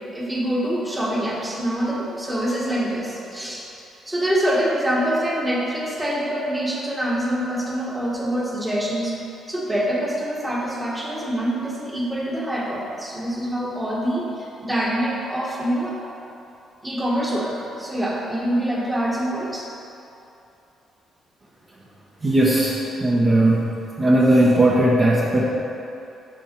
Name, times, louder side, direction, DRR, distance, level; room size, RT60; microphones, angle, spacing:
voice 1, 0.1-3.6 4.0-9.1 9.5-16.0 16.8-19.7, right 1 dB, 10° right, -4 dB, 1.3 m, -25 dB
voice 2, 22.2-23.7 24.0-25.5, right 1 dB, 30° right, -6 dB, 1.0 m, -17 dB
6.3 x 5.4 x 4.5 m, 2.8 s
cardioid pair, 90°, 0 cm